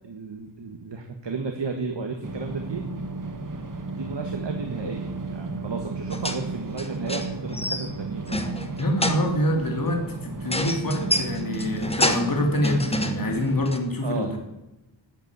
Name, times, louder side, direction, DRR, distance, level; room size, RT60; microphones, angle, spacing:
voice 1, 0.0-2.9 3.9-8.4 11.7-12.1 14.0-14.3, right 4 dB, 70° right, 4 dB, 1.6 m, -33 dB
sound 1, 2.2-13.7, right 3 dB, 45° right, 1.6 m, -34 dB
sound 2, 6.1-6.4 6.8-8.0 8.3-9.4 10.5-12.4 12.6-13.3 13.7-13.8, left 1 dB, 15° left, 1.3 m, -28 dB
voice 2, 8.8-14.4, left 1 dB, 50° left, 2 dB, 2.7 m, -26 dB
13.0 x 8.4 x 9.3 m, 0.97 s
wide cardioid pair, 95°, 44 cm